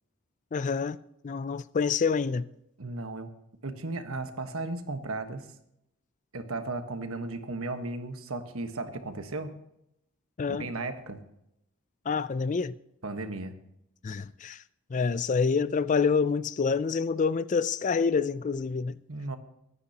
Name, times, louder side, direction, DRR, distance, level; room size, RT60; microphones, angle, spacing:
voice 1, 0.5-2.5 10.4-10.7 12.1-12.7 14.0-14.6 14.9-19.0, left 5 dB, 35° left, 0.4 m, -27 dB
voice 2, 2.8-3.3 3.6-5.5 6.3-9.6 10.5-11.2 13.0-13.5 19.1-19.4, right 2 dB, 70° right, 1.3 m, -35 dB
24.5 x 9.8 x 2.9 m
head